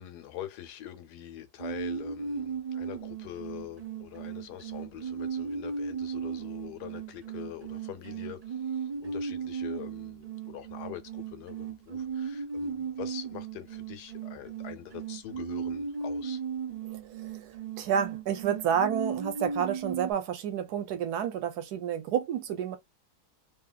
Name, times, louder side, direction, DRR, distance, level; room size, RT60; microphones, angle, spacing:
voice 1, 0.0-16.4, left 12 dB, 85° left, 1.2 m, -44 dB
sound 1, 1.6-20.1, right 6 dB, 60° right, 0.4 m, -36 dB
voice 2, 16.8-22.8, right 8 dB, 80° right, 1.2 m, -30 dB
2.9 x 2.7 x 2.3 m
omnidirectional pair, 1.7 m